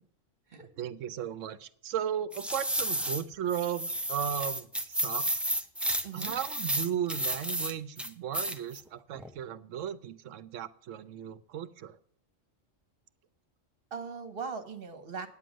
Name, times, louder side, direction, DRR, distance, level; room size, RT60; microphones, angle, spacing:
voice 1, 0.6-5.3 6.1-12.0, right 9 dB, 75° right, 15 dB, 1.0 m, -36 dB
sound 1, 2.3-3.2 3.5-7.7 8.0-8.8 9.2-9.3, right 1 dB, ahead, 0.5 m, -32 dB
voice 2, 6.0-6.4 13.9-15.3, right 5 dB, 50° right, 8 dB, 1.4 m, -39 dB
9.3 x 9.1 x 6.2 m, 0.63 s
omnidirectional pair, 1.3 m